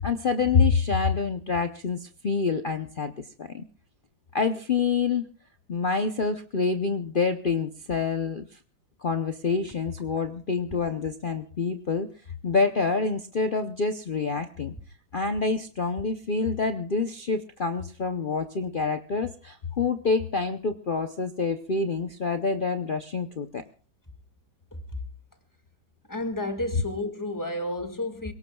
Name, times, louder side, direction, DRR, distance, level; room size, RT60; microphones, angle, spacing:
voice 1, 0.0-3.7 4.3-5.3 5.7-8.5 9.0-12.1 12.4-14.7 15.1-23.6, left 4 dB, 85° left, 0.4 m, -27 dB
voice 2, 24.7-25.0 26.1-28.3, left 1 dB, 10° left, 1.7 m, -31 dB
27.5 x 18.0 x 2.3 m
omnidirectional pair, 2.1 m